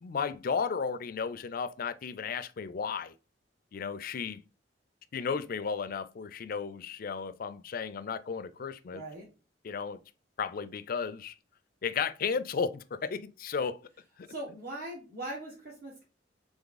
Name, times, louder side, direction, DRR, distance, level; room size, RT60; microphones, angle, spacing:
voice 1, 0.0-3.1 3.7-4.4 5.1-9.0 9.6-10.0 10.4-11.3 11.8-13.8 14.2-14.3, left 6 dB, 50° left, 0.4 m, -34 dB
voice 2, 8.9-9.3 14.3-16.0, right 1 dB, 60° right, 1.4 m, -40 dB
3.6 x 3.5 x 3.9 m
head